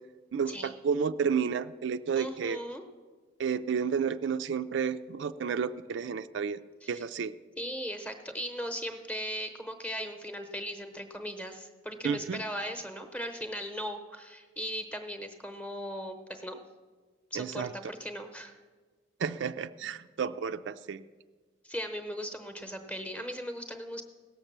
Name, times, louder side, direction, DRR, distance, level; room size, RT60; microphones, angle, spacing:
voice 1, 0.3-2.6 3.4-6.6 6.9-7.3 12.0-12.4 17.3-17.7 19.2-21.0, right 6 dB, 70° right, 11 dB, 0.3 m, -31 dB
voice 2, 2.1-2.8 6.8-7.0 7.6-16.6 17.3-18.5 21.6-24.0, equal, 5° left, 5 dB, 0.8 m, -38 dB
16.5 x 6.7 x 7.3 m, 1.4 s
head